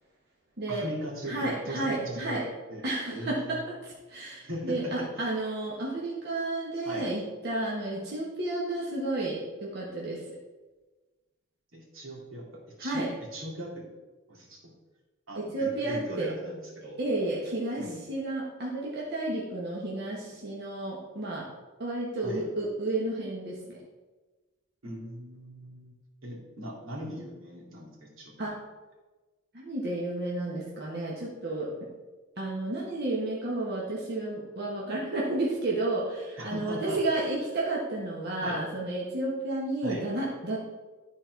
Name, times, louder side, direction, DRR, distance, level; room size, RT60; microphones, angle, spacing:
voice 1, 0.7-2.8 3.1-3.6 4.4-5.3 6.8-7.1 11.7-12.5 12.8-13.9 14.3-14.6 15.3-17.0 17.8-18.0 22.2-22.5 24.8-25.9 26.2-28.5 36.4-37.3 38.4-38.6 39.8-40.1, equal, 80° right, -3 dB, 2.4 m, -39 dB
voice 2, 1.3-2.4 2.8-10.2 12.8-13.1 15.3-16.3 17.0-21.5 21.8-23.8 28.4-28.6 29.5-31.9 32.4-40.6, right 2 dB, 55° right, -5 dB, 1.5 m, -32 dB
12.0 x 4.3 x 4.6 m, 1.2 s
head